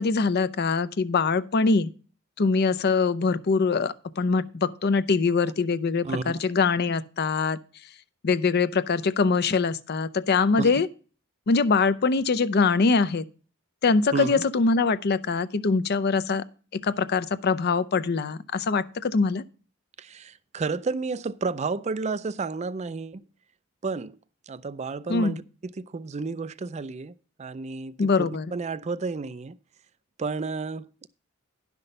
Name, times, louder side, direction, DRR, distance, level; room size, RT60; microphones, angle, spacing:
voice 1, 0.0-1.9 2.4-7.6 8.2-10.9 11.5-13.2 13.8-16.4 16.7-19.4 25.1-25.4 28.0-28.5, left 4 dB, 50° left, 0.5 m, -23 dB
voice 2, 6.0-6.4 10.6-10.8 14.1-14.5 20.0-23.2 23.8-24.1 24.5-25.4 25.8-27.1 27.4-29.6 30.2-31.1, right 4 dB, 30° right, 0.4 m, -31 dB
11.0 x 6.0 x 5.3 m
head